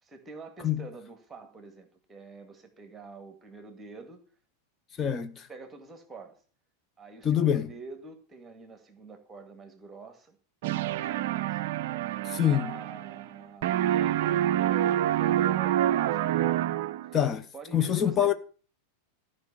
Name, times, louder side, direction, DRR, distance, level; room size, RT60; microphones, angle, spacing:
voice 1, 0.0-4.2 5.5-6.4 7.0-10.4 10.7-11.6 12.4-16.7 17.5-18.3, right 4 dB, 15° right, 2.0 m, -46 dB
voice 2, 5.0-5.5 7.2-7.7 12.2-12.7 17.1-17.5 17.7-18.3, left 10 dB, 25° left, 0.7 m, -25 dB
sound 1, 10.6-13.4 13.6-17.2, right 12 dB, 50° right, 0.4 m, -27 dB
13.5 x 5.4 x 7.2 m
figure-of-eight pair, 90°, 0 cm